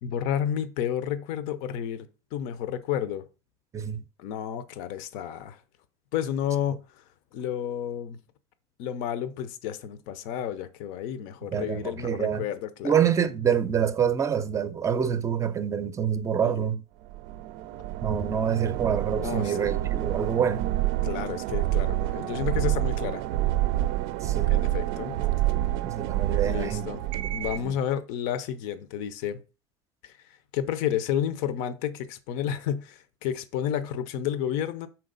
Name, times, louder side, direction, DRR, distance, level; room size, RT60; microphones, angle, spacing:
voice 1, 0.0-2.1 2.3-3.2 4.2-5.6 6.1-6.8 7.3-8.2 8.8-12.9 16.4-16.7 19.2-19.8 21.0-23.2 24.5-25.2 26.4-27.0 27.3-29.4 30.0-30.1 30.5-34.9, left 9 dB, 70° left, 0.7 m, -31 dB
voice 2, 3.7-4.0 11.5-12.5 12.8-16.8 18.0-20.7 24.2-24.6 25.5-26.9 27.2-27.7, right 8 dB, 20° right, 0.5 m, -27 dB
sound 1, 17.1-27.7, right 14 dB, 75° right, 0.4 m, -28 dB
5.8 x 4.5 x 3.9 m
cardioid pair, 145°, 15 cm